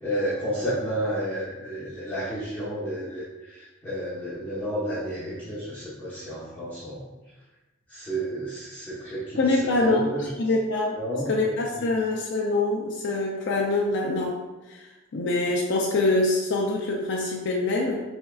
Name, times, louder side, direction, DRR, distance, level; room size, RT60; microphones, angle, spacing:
voice 1, 0.0-7.1 7.9-10.3 10.9-11.3 11.7-11.9, equal, 10° left, -13 dB, 1.0 m, -31 dB
voice 2, 9.4-11.0 11.3-14.4 14.7-14.8 15.1-18.0, left 2 dB, 60° left, -2 dB, 0.4 m, -24 dB
4.4 x 3.4 x 2.3 m, 1.1 s
head